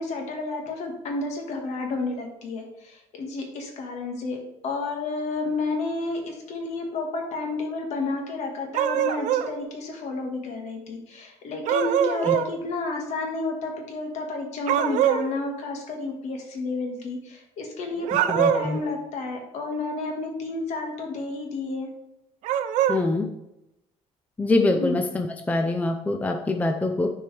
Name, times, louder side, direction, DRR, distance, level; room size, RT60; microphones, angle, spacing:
voice 1, 0.0-21.9 24.7-25.0, left 3 dB, 65° left, 2 dB, 1.7 m, -31 dB
sound 1, 8.7-9.5 11.7-12.5 14.7-15.3 18.0-18.8 22.4-23.0, right 10 dB, 80° right, 0.5 m, -23 dB
voice 2, 18.3-18.8 22.9-23.3 24.4-27.1, left 2 dB, 10° left, 5 dB, 0.5 m, -24 dB
10.0 x 4.5 x 3.4 m, 0.86 s
cardioid pair, 145°, 12 cm